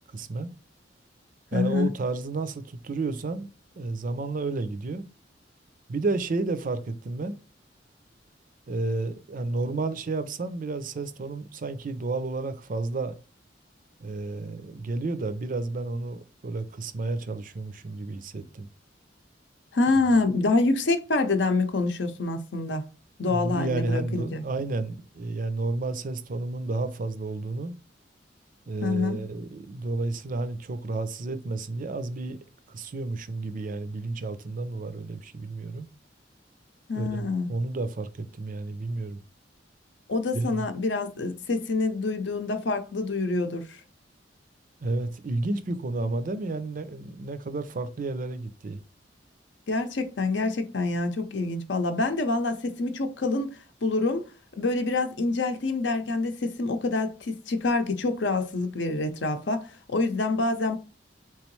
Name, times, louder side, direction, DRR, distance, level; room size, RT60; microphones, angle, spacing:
voice 1, 0.1-0.5 1.5-5.1 5.9-7.3 8.7-13.2 14.0-18.7 23.2-27.7 28.7-32.4 32.7-35.9 36.9-39.2 40.3-40.6 44.8-48.8, right 3 dB, 50° right, 0.5 m, -31 dB
voice 2, 1.5-1.9 19.7-22.9 23.2-24.4 28.8-29.2 36.9-37.5 40.1-43.8 49.7-54.2 54.6-60.8, left 3 dB, 75° left, 0.7 m, -26 dB
3.7 x 3.0 x 3.1 m
head